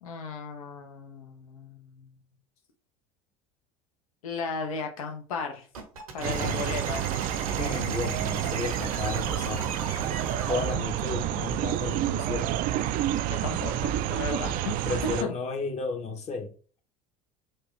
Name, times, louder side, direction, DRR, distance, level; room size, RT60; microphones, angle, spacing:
voice 1, 0.0-2.1 4.2-5.7 6.1-7.1 13.3-14.8 15.2-15.3, left 5 dB, 80° left, 0.9 m, -35 dB
sound 1, 5.7-10.8, right 4 dB, 85° right, 1.2 m, -37 dB
sound 2, 6.2-15.2, right 11 dB, 55° right, 0.4 m, -29 dB
voice 2, 6.3-6.8 7.5-9.8 10.5-12.5 14.8-16.5, left 4 dB, 40° left, 1.0 m, -33 dB
4.4 x 2.4 x 3.2 m
hypercardioid pair, 75°, 18 cm